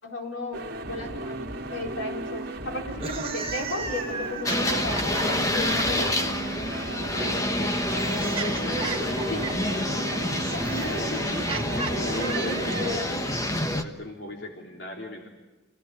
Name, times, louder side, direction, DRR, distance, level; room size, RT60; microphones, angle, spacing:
voice 1, 0.0-6.2 9.3-9.5 10.4-11.2 12.2-13.3, left 1 dB, 90° left, 1 dB, 4.6 m, -35 dB
sound 1, 0.5-12.9, right 2 dB, 55° right, 2.2 m, -35 dB
sound 2, 2.9-6.1 7.2-13.1, right 4 dB, 30° right, 2.1 m, -36 dB
sound 3, 4.5-13.8, left 1 dB, 15° left, 1.3 m, -28 dB
voice 2, 7.1-10.0 10.6-11.4 11.7-13.4 13.8-15.3, equal, 65° left, 0 dB, 3.4 m, -39 dB
28.0 x 17.5 x 9.9 m, 1.1 s
head